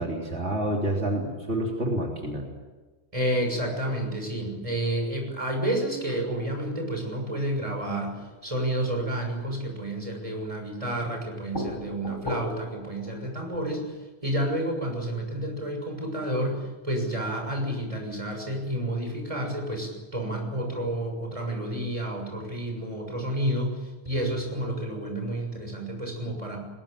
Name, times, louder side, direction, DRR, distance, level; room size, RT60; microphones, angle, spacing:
voice 1, 0.0-2.4, right 1 dB, 75° right, -1 dB, 3.7 m, -28 dB
voice 2, 3.1-8.1 8.4-13.9 14.2-23.8 24.0-26.6, right 1 dB, 30° right, 2 dB, 6.7 m, -30 dB
sound 1, 7.7-9.7 11.0-14.0, left 1 dB, 50° left, 5.1 m, -39 dB
21.0 x 21.0 x 8.9 m, 1.2 s
omnidirectional pair, 1.1 m